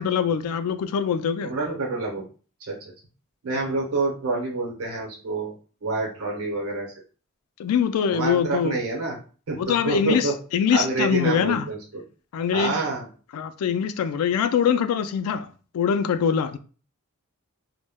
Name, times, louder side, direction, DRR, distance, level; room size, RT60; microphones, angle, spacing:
voice 1, 0.0-1.5 3.5-3.7 7.6-8.8 9.6-11.7 12.3-12.8 13.3-15.5 15.7-16.6, left 7 dB, 90° left, 0.3 m, -23 dB
voice 2, 1.4-2.2 2.7-2.8 3.4-5.5 5.8-6.9 8.1-9.2 9.5-10.3 10.7-12.0 12.5-13.1, right 3 dB, 85° right, 0.8 m, -27 dB
2.1 x 2.1 x 3.3 m
head